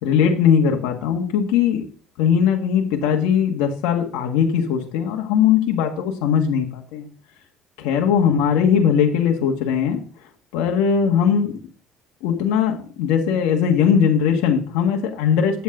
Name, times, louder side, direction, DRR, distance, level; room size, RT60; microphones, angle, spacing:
voice 1, 0.0-1.8 2.2-7.1 7.8-10.0 10.5-11.5 12.2-15.6, left 7 dB, 85° left, 2 dB, 1.7 m, -19 dB
8.5 x 8.2 x 3.8 m, 0.42 s
cardioid pair, 125°, 0 cm